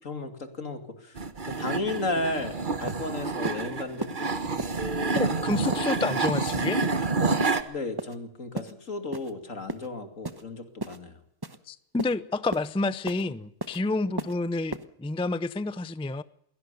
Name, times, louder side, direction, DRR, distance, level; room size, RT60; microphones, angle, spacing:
voice 1, 0.0-4.6 7.7-11.2, left 2 dB, 80° left, 2.9 m, -34 dB
sound 1, 1.2-7.6, right 3 dB, 40° right, 1.4 m, -28 dB
sound 2, 2.4-2.5 2.9-3.0 3.4-3.6 4.0-4.1 4.6-4.7 5.1-5.3 5.7-5.9 6.3-6.4 6.8-7.0 7.4-7.6 8.0-8.2 8.6-8.7 9.1-9.3 9.7-9.9 10.2-10.4 10.8-11.0 11.4-11.6 12.0-12.1 12.5-12.7 13.1-13.2 13.6-13.8 14.2-14.4 14.7-14.8, right 2 dB, 20° right, 1.1 m, -34 dB
sound 3, 4.8-8.3, left 3 dB, 30° left, 2.4 m, -44 dB
voice 2, 5.1-6.8 11.7-16.2, left 3 dB, 10° left, 0.3 m, -29 dB
22.5 x 17.5 x 6.8 m
omnidirectional pair, 1.3 m